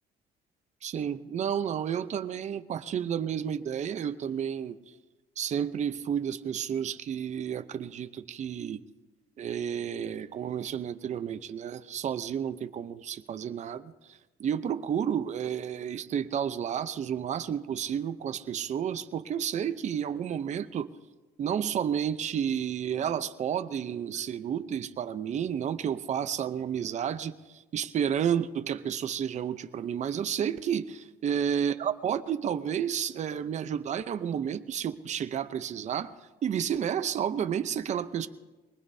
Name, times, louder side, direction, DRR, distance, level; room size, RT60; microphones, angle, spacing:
voice 1, 0.8-4.8 5.4-8.8 9.4-20.9 21.4-36.1 36.4-38.3, right 8 dB, 45° right, 10 dB, 0.7 m, -31 dB
23.5 x 20.0 x 2.8 m, 1.2 s
cardioid pair, 110°, 17 cm